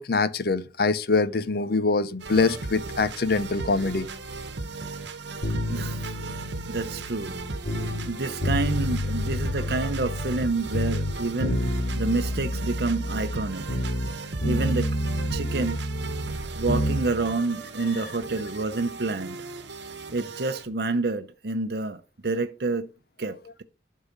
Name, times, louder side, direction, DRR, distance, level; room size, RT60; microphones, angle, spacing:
voice 1, 0.0-4.1, left 4 dB, 55° left, 0.6 m, -24 dB
sound 1, 2.2-20.6, right 3 dB, 70° right, 1.1 m, -36 dB
sound 2, 5.4-8.1 8.4-10.5 10.7-14.1 14.4-17.0 17.3-17.4, equal, 85° left, 2.1 m, -29 dB
voice 2, 5.7-6.1 6.7-7.3 8.1-13.6 14.4-15.0 15.3-15.8 16.6-19.4 20.1-22.9 23.2-23.6, right 3 dB, 55° right, 0.7 m, -28 dB
11.5 x 5.6 x 5.2 m
head